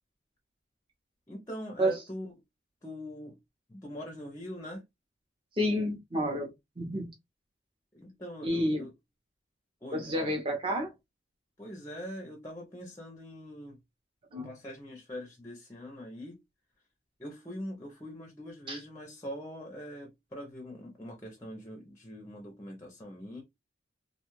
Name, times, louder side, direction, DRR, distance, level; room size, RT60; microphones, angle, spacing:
voice 1, 1.3-2.3 2.8-3.4 3.7-4.8 7.9-8.9 9.8-10.4 11.6-13.8 14.4-16.4 17.2-23.4, equal, 15° left, 0.5 m, -43 dB
voice 2, 5.5-6.5 6.8-7.1 8.4-8.9 9.9-10.9 14.3-14.5 18.7-18.8, equal, 25° right, 0.7 m, -30 dB
2.5 x 2.3 x 3.0 m
head